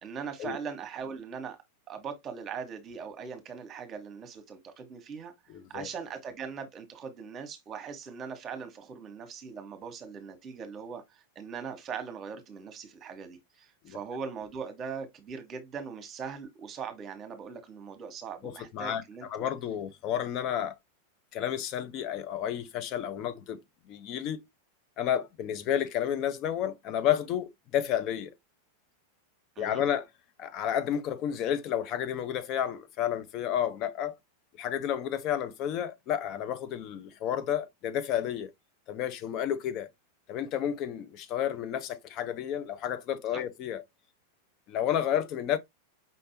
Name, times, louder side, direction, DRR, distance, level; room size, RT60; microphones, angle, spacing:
voice 1, 0.0-1.6 1.9-5.3 5.7-19.3 29.5-29.8 43.3-43.4, right 6 dB, 30° right, 1.2 m, -40 dB
voice 2, 5.5-5.9 13.8-14.0 18.4-20.7 21.3-23.6 23.9-24.4 25.0-28.3 29.6-30.1 30.4-34.2 34.6-38.5 38.9-39.9 40.3-43.8 44.7-45.6, left 10 dB, 40° left, 0.7 m, -31 dB
5.5 x 3.3 x 2.8 m
figure-of-eight pair, 90°, 0 cm